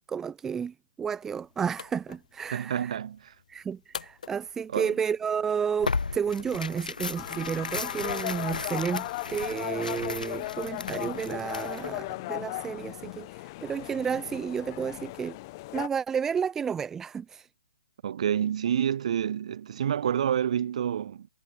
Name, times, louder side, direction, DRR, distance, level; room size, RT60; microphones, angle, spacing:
voice 1, 0.1-3.0 3.5-15.4 15.7-17.5, right 7 dB, 10° right, 0.7 m, -31 dB
sound 1, 1.1-6.1, left 7 dB, 60° left, 2.3 m, -48 dB
voice 2, 2.5-3.3 4.7-4.9 18.0-21.3, right 9 dB, 50° right, 2.3 m, -28 dB
Tearing, 5.8-12.0, left 4 dB, 80° left, 3.0 m, -35 dB
sound 2, 7.1-15.9, left 21 dB, 30° left, 1.7 m, -37 dB
hypercardioid pair, 145°, 4 cm